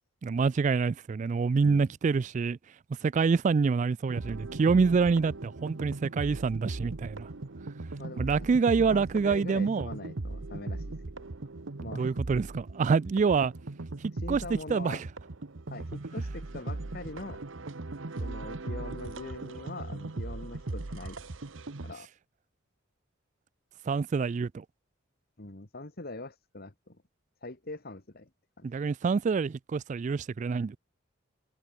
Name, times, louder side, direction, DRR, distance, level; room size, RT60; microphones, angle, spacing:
voice 1, 0.2-2.6 3.0-7.3 8.2-9.9 12.0-13.5 14.3-14.4 14.7-15.0 23.9-24.6 28.6-30.8, right 5 dB, 40° right, 0.3 m, -26 dB
sound 1, 4.1-21.9, right 2 dB, 75° right, 1.1 m, -38 dB
voice 2, 8.0-8.5 8.9-11.0 11.8-12.2 14.1-15.0 15.7-17.4 18.2-21.2 21.8-22.1 25.4-27.0 27.4-28.3 28.6-28.7, left 2 dB, 50° left, 1.9 m, -42 dB
head